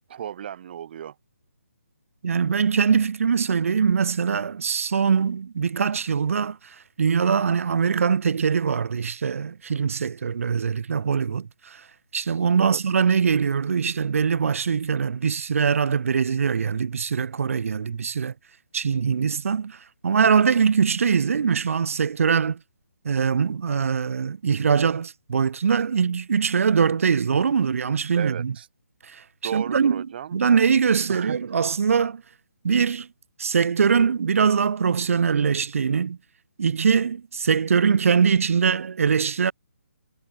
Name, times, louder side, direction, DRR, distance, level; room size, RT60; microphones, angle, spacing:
voice 1, 0.1-1.1 12.6-12.8 28.1-28.7 29.4-30.4 31.1-31.4, right 9 dB, 40° right, 6.6 m, -34 dB
voice 2, 2.2-6.6 7.0-11.8 12.1-18.3 18.7-19.8 20.0-22.6 23.0-28.5 29.4-30.1 30.3-32.2 32.6-33.1 33.4-36.2 36.6-39.5, right 6 dB, 60° right, 0.7 m, -22 dB
hypercardioid pair, 155°, 8 cm